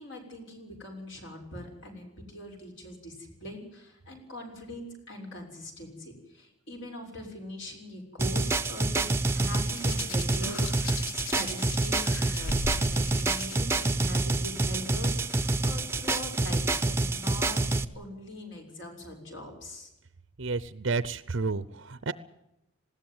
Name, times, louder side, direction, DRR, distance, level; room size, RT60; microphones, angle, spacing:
voice 1, 0.0-9.0 9.3-17.6 17.9-19.9, left 1 dB, 60° left, 3 dB, 6.6 m, -42 dB
sound 1, 8.2-17.8, right 2 dB, 10° right, 0.8 m, -27 dB
Hands, 9.7-13.6 14.6-14.8, left 3 dB, 75° left, 1.1 m, -38 dB
voice 2, 20.4-22.1, right 4 dB, 60° right, 15 dB, 0.7 m, -31 dB
20.0 x 16.0 x 9.5 m, 0.91 s
head